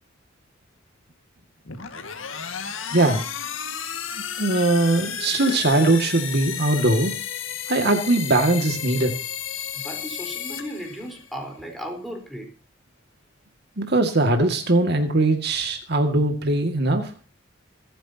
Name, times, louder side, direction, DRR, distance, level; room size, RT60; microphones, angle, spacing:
sound 1, 1.6-11.4, left 8 dB, 80° left, 1.9 m, -33 dB
voice 1, 2.9-3.2 4.1-7.1 7.7-9.2 13.8-17.1, right 2 dB, 55° right, 5 dB, 2.1 m, -21 dB
voice 2, 9.7-12.5, equal, ahead, 2 dB, 4.2 m, -35 dB
27.0 x 10.0 x 2.9 m, 0.36 s
head